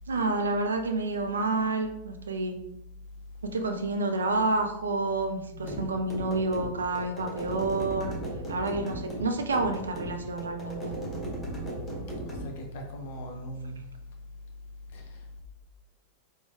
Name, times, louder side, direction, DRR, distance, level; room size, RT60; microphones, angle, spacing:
voice 1, 0.1-2.5 3.4-8.2 8.5-11.0, right 3 dB, 70° right, 6 dB, 0.3 m, -29 dB
sound 1, 5.6-12.5, right 1 dB, 15° left, 0.8 m, -37 dB
voice 2, 12.3-13.8 14.9-15.0, equal, 55° left, 1 dB, 0.6 m, -39 dB
3.0 x 2.0 x 2.6 m, 0.80 s
figure-of-eight pair, 90°, 0 cm